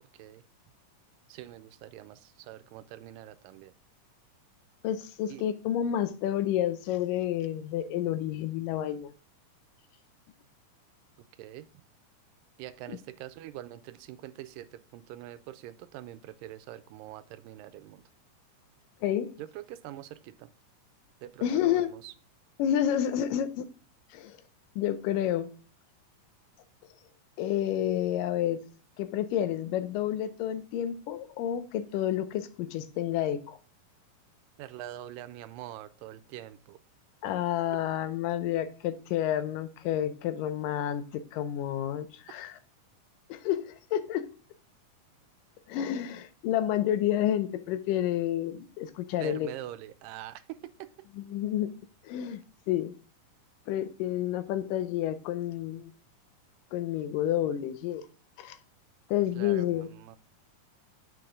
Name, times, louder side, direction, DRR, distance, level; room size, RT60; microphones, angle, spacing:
voice 1, 1.3-3.7 5.3-5.4 11.2-11.8 12.6-18.0 19.4-20.5 21.2-22.1 34.6-36.8 49.2-50.9 59.3-60.2, right 13 dB, 85° right, 13 dB, 2.2 m, -44 dB
voice 2, 4.8-9.1 12.9-13.0 19.0-19.3 21.4-21.9 22.6-23.7 24.1-24.4 24.8-25.5 27.4-28.6 29.0-33.6 37.2-42.6 43.3-44.3 45.7-49.5 51.2-51.7 52.0-52.4 52.7-52.9 53.7-55.9 56.7-58.1 58.4-58.6 59.1-59.9, left 11 dB, 85° left, 12 dB, 2.3 m, -30 dB
7.7 x 6.1 x 3.6 m, 0.38 s
omnidirectional pair, 3.8 m